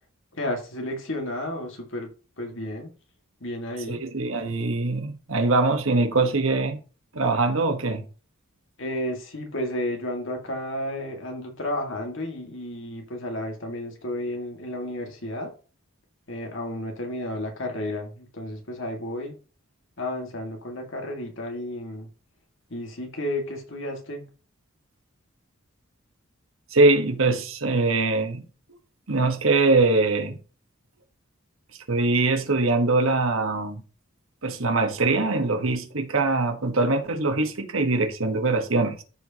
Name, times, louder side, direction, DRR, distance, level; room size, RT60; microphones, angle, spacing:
voice 1, 0.3-2.1 2.4-2.9 3.4-4.0 8.8-15.5 16.3-19.4 20.0-22.1 22.7-24.3, left 1 dB, 60° left, 2.0 m, -32 dB
voice 2, 3.9-6.8 7.1-8.0 26.7-28.4 29.1-30.4 31.9-33.8 34.4-39.0, right 3 dB, 70° right, 1.3 m, -22 dB
13.5 x 4.9 x 2.9 m
head